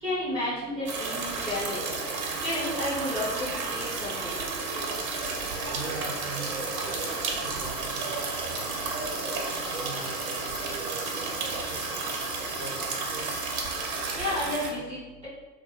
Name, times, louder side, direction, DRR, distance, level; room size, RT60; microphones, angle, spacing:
voice 1, 0.0-1.9 2.3-4.4 14.1-15.3, left 1 dB, 5° right, -11 dB, 0.3 m, -32 dB
sound 1, 0.8-13.9, left 5 dB, 80° left, 0.6 m, -50 dB
sound 2, 0.9-14.7, right 4 dB, 55° right, 0.6 m, -32 dB
sound 3, 4.6-14.1, left 2 dB, 30° left, 0.6 m, -45 dB
voice 2, 5.5-9.4 9.7-13.4, right 2 dB, 90° right, -4 dB, 0.8 m, -43 dB
2.2 x 2.2 x 3.0 m, 1.2 s
figure-of-eight pair, 95°, 50 cm